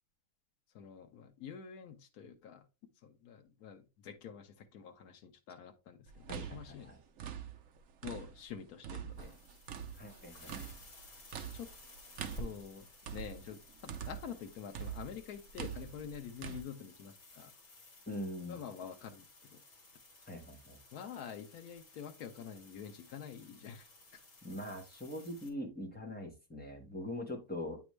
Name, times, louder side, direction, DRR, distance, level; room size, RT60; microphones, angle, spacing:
voice 1, 0.7-2.7 3.0-7.0 8.0-9.4 11.5-11.7 12.4-17.5 18.5-19.6 20.9-24.2, left 8 dB, 85° left, 1.3 m, -47 dB
sound 1, 6.1-8.5 8.8-14.4 14.7-16.6, right 8 dB, 65° right, 1.0 m, -44 dB
voice 2, 6.3-7.0 10.0-10.6 18.1-18.6 20.3-20.8 24.4-27.8, left 1 dB, 5° left, 1.2 m, -42 dB
sound 2, 9.2-25.5, equal, 60° left, 2.0 m, -55 dB
8.8 x 3.6 x 3.1 m
omnidirectional pair, 1.6 m